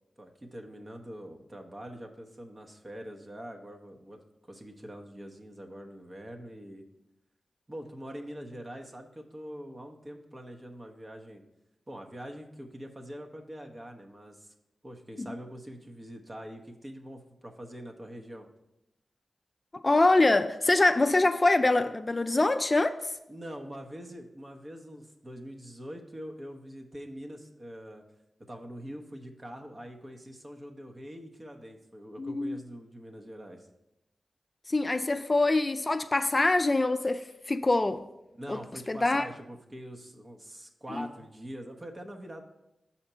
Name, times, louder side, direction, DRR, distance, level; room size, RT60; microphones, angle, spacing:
voice 1, 0.2-6.8 7.7-11.4 11.9-14.5 14.8-18.5 23.3-28.0 28.5-33.7 38.4-42.4, equal, 35° right, 1.1 m, -44 dB
voice 2, 19.7-23.1 32.2-32.6 34.7-38.0 38.5-38.6 38.9-39.3 40.9-41.1, left 2 dB, 35° left, 0.4 m, -25 dB
5.7 x 4.3 x 5.5 m
cardioid pair, 40°, 0 cm